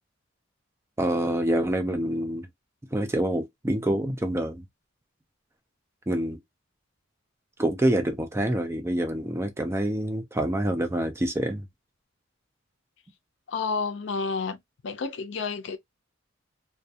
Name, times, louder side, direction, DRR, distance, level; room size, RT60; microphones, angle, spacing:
voice 1, 1.0-2.5 2.9-4.6 6.1-6.4 7.6-11.7, right 1 dB, 15° right, 0.4 m, -26 dB
voice 2, 13.5-14.6 14.8-15.8, left 4 dB, 65° left, 0.5 m, -30 dB
2.3 x 2.2 x 2.7 m
head